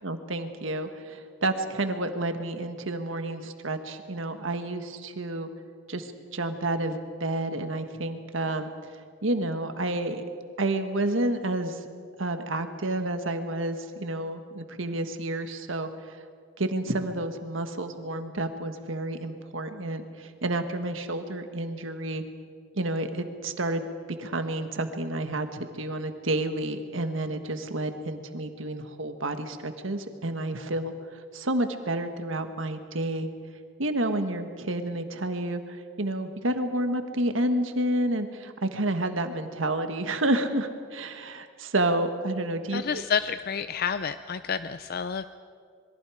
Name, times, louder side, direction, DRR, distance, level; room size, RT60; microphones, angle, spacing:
voice 1, 0.0-5.5 5.9-8.9 9.2-10.2 10.6-11.8 12.2-16.2 16.6-22.2 22.8-23.8 24.2-33.3 33.8-43.0, right 1 dB, 75° right, 7 dB, 1.6 m, -30 dB
voice 2, 42.7-45.3, left 6 dB, 50° left, 12 dB, 0.5 m, -29 dB
27.0 x 22.0 x 5.0 m, 2.1 s
head